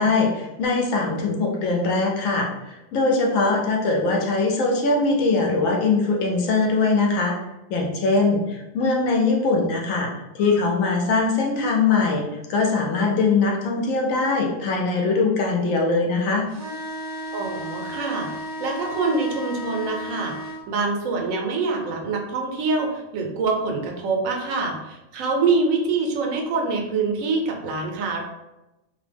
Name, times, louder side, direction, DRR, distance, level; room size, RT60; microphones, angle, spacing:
voice 1, 0.0-2.5 2.9-7.3 7.7-10.1 10.3-12.2 12.5-16.5, left 3 dB, 80° left, 0 dB, 1.0 m, -21 dB
sound 1, 16.5-20.6, equal, 15° right, 0.6 m, -34 dB
voice 2, 17.3-18.3 18.6-28.2, right 4 dB, 85° right, 2 dB, 1.0 m, -25 dB
2.6 x 2.1 x 3.3 m, 0.98 s
omnidirectional pair, 1.4 m